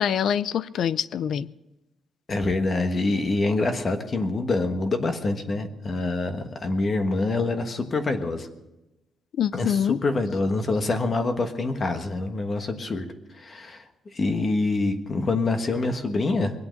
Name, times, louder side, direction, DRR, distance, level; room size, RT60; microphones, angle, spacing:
voice 1, 0.0-1.5 9.4-10.0, left 9 dB, 60° left, 17 dB, 0.4 m, -25 dB
voice 2, 2.3-8.5 9.5-13.0 13.4-13.8 14.1-16.5, left 3 dB, 30° left, 7 dB, 1.3 m, -25 dB
22.5 x 8.5 x 6.5 m, 0.99 s
cardioid pair, 175°, 0 cm